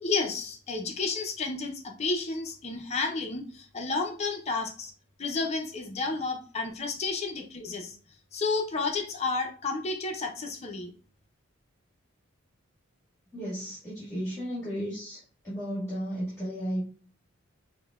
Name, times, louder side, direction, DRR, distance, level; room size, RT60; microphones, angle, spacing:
voice 1, 0.0-4.9 5.2-8.0 8.3-10.9, left 3 dB, 30° left, 3 dB, 0.5 m, -31 dB
voice 2, 13.3-15.2 15.4-16.8, equal, 15° left, -9 dB, 1.5 m, -34 dB
5.2 x 2.1 x 2.3 m, 0.42 s
head